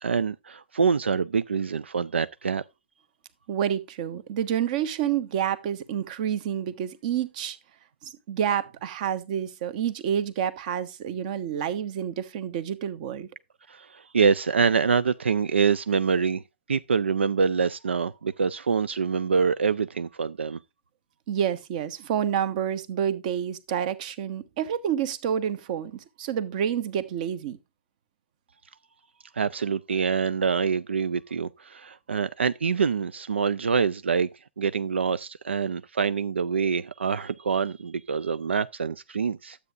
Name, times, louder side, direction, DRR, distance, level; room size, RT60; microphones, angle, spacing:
voice 1, 0.0-2.6 13.7-16.4 16.7-20.6 29.3-34.3 34.6-39.6, right 6 dB, 80° right, 0.4 m, -25 dB
voice 2, 3.5-7.6 8.0-13.3 21.3-27.6, right 9 dB, 45° right, 1.1 m, -28 dB
12.5 x 8.3 x 2.5 m
hypercardioid pair, 130°, 6 cm